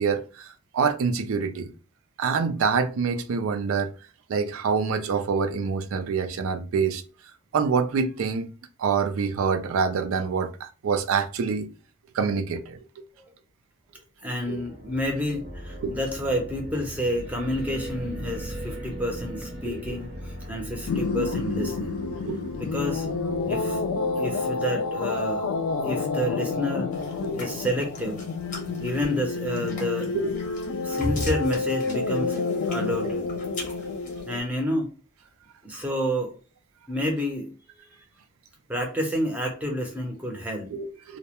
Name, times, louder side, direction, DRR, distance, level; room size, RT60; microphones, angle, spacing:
voice 1, 0.0-1.7 2.2-3.9 4.3-7.0 7.5-8.5 8.8-11.7 12.1-13.0 14.5-14.6 15.8-16.0 19.6-19.8 21.6-21.7 22.1-22.5 23.3-23.5 27.2-27.4 28.6-28.8 30.1-30.4 40.7-41.2, right 5 dB, 90° right, 0.4 m, -26 dB
voice 2, 14.2-22.0 22.6-23.1 23.5-25.5 25.8-26.9 27.3-28.3 28.8-30.2 30.8-33.3 34.3-34.9 35.6-36.4 36.9-37.5 38.7-40.7, equal, 10° right, 0.5 m, -29 dB
sound 1, 14.4-24.6, equal, 60° right, 0.7 m, -39 dB
sound 2, 20.9-34.4, left 4 dB, 90° left, 0.3 m, -29 dB
sound 3, 26.9-34.4, left 1 dB, 40° left, 0.6 m, -37 dB
2.2 x 2.1 x 2.9 m
head